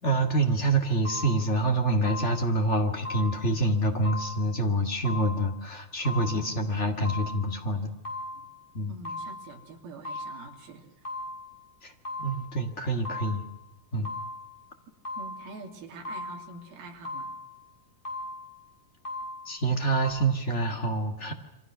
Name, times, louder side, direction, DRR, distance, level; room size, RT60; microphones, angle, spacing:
voice 1, 0.0-7.9 8.7-8.9 11.8-11.9 12.2-13.4 13.9-14.1 19.4-21.3, right 2 dB, 30° left, 3 dB, 1.5 m, -26 dB
sound 1, 1.1-1.6 2.1-2.6 3.1-3.6 4.1-4.6 5.1-5.6 6.1-6.6 7.1-7.6 8.1-8.6 9.1-9.6 10.1-10.6 11.1-11.6 12.1-12.6 13.1-13.6 14.1-14.6 15.1-15.6 16.1-16.6 17.1-17.6 18.1-18.6 19.1-19.6 20.1-20.2, left 1 dB, 10° left, 6.9 m, -38 dB
voice 2, 8.9-10.9 15.2-17.4, right 3 dB, 75° right, 1 dB, 4.7 m, -45 dB
28.5 x 24.5 x 6.2 m, 0.92 s
omnidirectional pair, 4.4 m